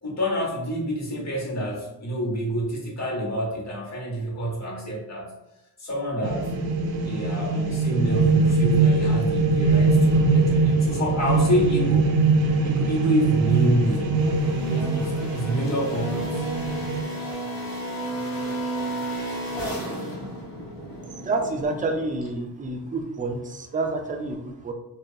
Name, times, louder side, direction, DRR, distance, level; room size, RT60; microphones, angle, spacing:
voice 1, 0.0-5.3 5.8-6.5 7.0-12.1 12.6-14.3 14.7-16.5 21.0-21.1, equal, 40° left, -2 dB, 1.0 m, -28 dB
sound 1, 6.2-17.0, right 3 dB, 85° right, 0.5 m, -22 dB
sound 2, 10.5-22.3, right 1 dB, 80° left, 1.1 m, -34 dB
voice 2, 21.0-24.7, right 3 dB, 20° right, 4 dB, 0.3 m, -29 dB
2.6 x 2.3 x 2.6 m, 0.91 s
cardioid pair, 65°, 43 cm